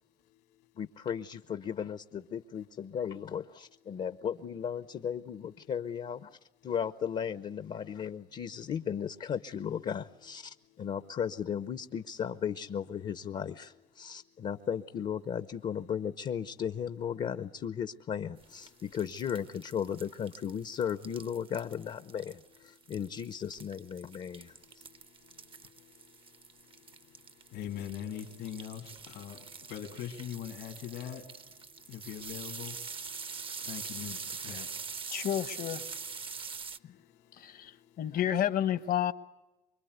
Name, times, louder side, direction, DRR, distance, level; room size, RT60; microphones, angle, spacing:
voice 1, 0.8-6.4 6.6-24.8, left 8 dB, 45° left, 11 dB, 0.8 m, -36 dB
sound 1, 18.4-36.8, right 5 dB, 30° right, 0.8 m, -44 dB
voice 2, 27.5-29.4 29.7-31.2 31.9-32.8 33.7-34.7, left 10 dB, 85° left, 1 dB, 3.0 m, -41 dB
voice 3, 35.1-35.8 36.8-36.9 37.3-39.1, left 10 dB, 60° left, 11 dB, 1.3 m, -31 dB
25.5 x 23.0 x 8.2 m, 1.1 s
cardioid pair, 110°, 17 cm